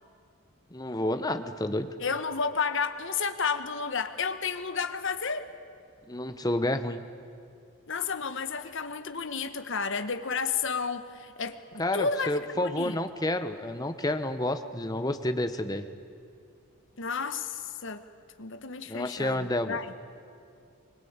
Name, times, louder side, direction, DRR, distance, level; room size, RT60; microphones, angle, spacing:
voice 1, 0.7-1.9 6.1-7.0 11.8-15.9 18.9-19.8, left 1 dB, 15° left, 9 dB, 1.0 m, -30 dB
voice 2, 2.0-5.5 7.9-13.0 17.0-18.0 18.4-19.9, left 5 dB, 55° left, 10 dB, 1.2 m, -32 dB
25.0 x 21.0 x 8.8 m, 2.4 s
head